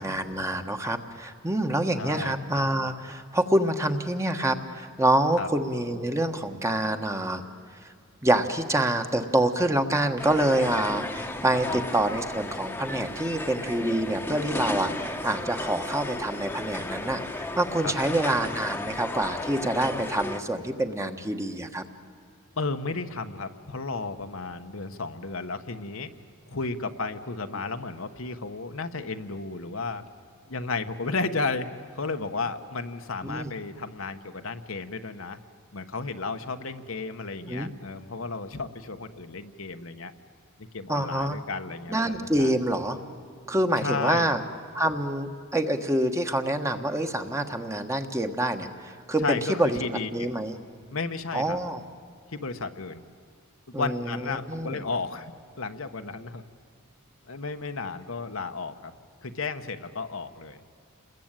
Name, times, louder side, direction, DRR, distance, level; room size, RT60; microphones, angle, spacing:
voice 1, 0.0-7.4 8.2-21.8 33.2-33.5 37.5-37.7 40.9-41.4 41.9-43.0 43.5-44.4 44.7-49.8 50.1-50.6 51.3-51.8 53.7-54.2 54.5-54.8, right 1 dB, 15° right, 6 dB, 1.3 m, -26 dB
voice 2, 2.0-2.4 5.4-5.5 11.6-11.8 17.8-18.2 22.6-26.1 26.5-30.0 30.5-35.4 35.7-40.1 40.6-42.5 43.8-44.4 49.2-50.3 50.9-51.6 52.3-53.0 53.7-55.3 55.6-56.4 57.3-58.9 59.2-60.6, left 3 dB, 70° left, 7 dB, 1.2 m, -33 dB
sound 1, 10.2-20.4, left 1 dB, 10° left, 1.2 m, -34 dB
29.0 x 21.0 x 9.0 m, 2.3 s
head